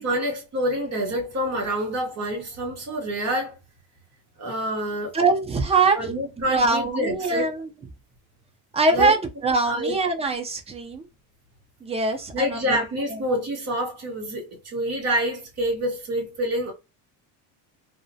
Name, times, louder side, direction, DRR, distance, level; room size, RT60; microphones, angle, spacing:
voice 1, 0.0-3.6 4.4-5.1 5.9-7.5 8.9-9.1 9.6-10.0 12.3-16.7, equal, 40° right, 1.0 m, -27 dB
voice 2, 5.1-6.1 6.4-7.7 8.7-11.0 11.8-12.8 13.1-13.2, right 3 dB, 15° right, 0.4 m, -23 dB
2.4 x 2.0 x 2.6 m
cardioid pair, 125°, 42 cm